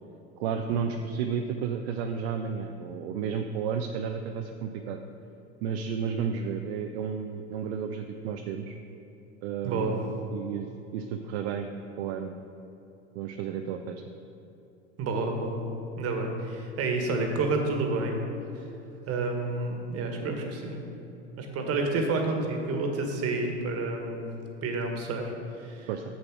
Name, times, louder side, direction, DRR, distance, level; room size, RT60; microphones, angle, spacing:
voice 1, 0.4-5.0 5.6-8.7 9.4-11.7 12.0-12.4 13.1-14.0 20.2-20.5 25.9-26.0, right 7 dB, 65° right, 5 dB, 0.6 m, -32 dB
voice 2, 9.6-9.9 15.0-18.2 19.0-20.8 21.4-24.3 24.6-25.3 25.6-25.9, right 3 dB, 40° right, 3 dB, 1.5 m, -29 dB
7.5 x 7.2 x 4.7 m, 2.9 s
hypercardioid pair, 90°, 35 cm